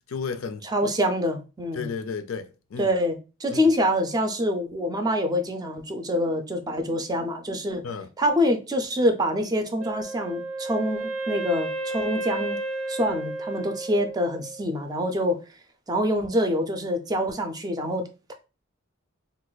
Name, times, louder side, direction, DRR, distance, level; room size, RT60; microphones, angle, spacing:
voice 1, 0.1-0.6 1.7-2.9 3.5-3.6 7.8-8.1, left 5 dB, 90° left, 0.4 m, -32 dB
voice 2, 0.6-1.9 2.8-7.8 8.2-12.6 12.9-15.4 15.9-18.3, equal, 20° right, 0.4 m, -26 dB
Wind instrument woodwind instrument, 9.8-14.6, right 2 dB, 80° right, 0.5 m, -32 dB
2.5 x 2.3 x 3.9 m
head